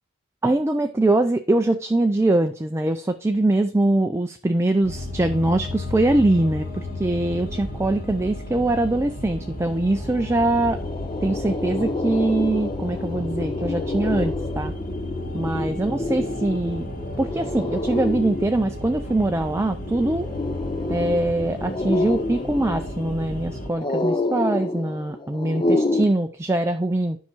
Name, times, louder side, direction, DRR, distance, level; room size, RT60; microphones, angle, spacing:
voice 1, 0.4-10.8 11.2-14.7 15.3-16.9 17.2-20.3 20.9-27.2, right 2 dB, 10° right, 6 dB, 0.4 m, -23 dB
sound 1, 4.8-23.7, left 1 dB, 40° left, 2.2 m, -33 dB
sound 2, 9.5-9.6 9.9-26.0, left 2 dB, 20° left, 0.7 m, -29 dB
9.9 x 5.8 x 4.4 m, 0.42 s
head